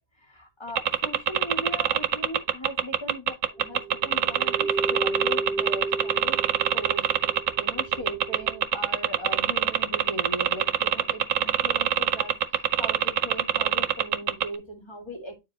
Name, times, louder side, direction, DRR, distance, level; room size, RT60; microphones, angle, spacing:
voice 1, 0.3-6.4 6.7-7.1 7.6-15.4, equal, 20° left, 1.9 m, -38 dB
sound 1, 0.8-14.5, right 10 dB, 90° right, 1.0 m, -23 dB
sound 2, 3.5-8.6, right 3 dB, ahead, 3.3 m, -34 dB
9.0 x 4.9 x 2.8 m
omnidirectional pair, 1.3 m